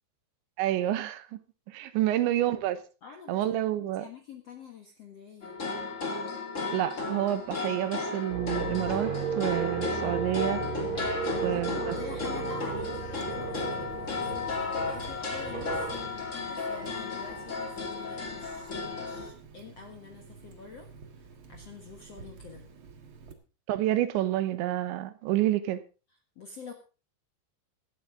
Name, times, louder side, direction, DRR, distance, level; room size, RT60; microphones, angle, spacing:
voice 1, 0.6-1.3 1.7-2.8 3.3-4.1 6.7-10.6 11.4-12.0 23.7-25.8, right 13 dB, 85° right, 3.3 m, -28 dB
voice 2, 3.0-3.4 4.0-5.6 11.2-22.7 26.3-26.7, left 5 dB, 65° left, 1.6 m, -47 dB
sound 1, 5.4-19.3, left 4 dB, 35° left, 1.2 m, -34 dB
sound 2, 8.3-16.3, right 5 dB, 40° right, 4.6 m, -35 dB
Water tap faucet, 12.6-23.3, right 5 dB, 65° right, 1.2 m, -51 dB
16.5 x 12.5 x 3.7 m
omnidirectional pair, 5.2 m